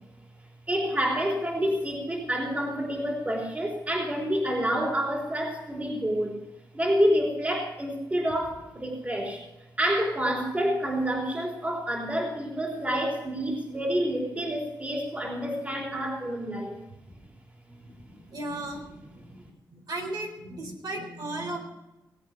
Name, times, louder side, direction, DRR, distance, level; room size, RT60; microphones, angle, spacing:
voice 1, 0.7-6.4 6.7-9.4 9.8-16.8, equal, 20° right, -1 dB, 3.3 m, -28 dB
voice 2, 17.7-19.4 19.7-21.6, right 2 dB, 65° right, 1 dB, 4.0 m, -36 dB
19.0 x 8.8 x 5.8 m, 0.97 s
wide cardioid pair, 130°, 7 cm